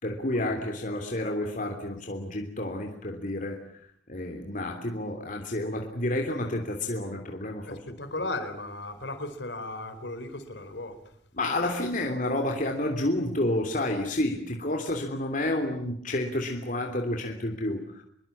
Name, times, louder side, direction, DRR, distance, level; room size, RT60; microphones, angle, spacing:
voice 1, 0.0-3.6 4.1-8.0 11.3-18.0, left 1 dB, 45° left, 3 dB, 3.2 m, -30 dB
voice 2, 7.7-11.0, left 2 dB, 65° left, 9 dB, 4.4 m, -36 dB
26.5 x 23.5 x 8.7 m, 0.67 s
head